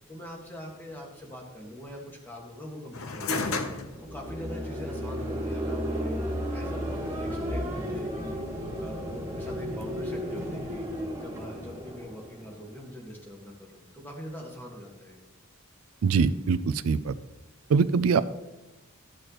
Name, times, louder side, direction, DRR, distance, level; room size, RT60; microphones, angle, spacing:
voice 1, 0.1-8.4 8.8-10.9 11.2-15.2, left 1 dB, 10° left, -1 dB, 1.7 m, -43 dB
sound 1, 2.9-12.1, left 3 dB, 80° left, 0.8 m, -39 dB
sound 2, 3.9-12.9, equal, 15° right, 2.2 m, -33 dB
voice 2, 16.0-17.1 17.7-18.2, right 5 dB, 85° right, 14 dB, 0.4 m, -23 dB
13.5 x 6.3 x 3.0 m, 1.0 s
head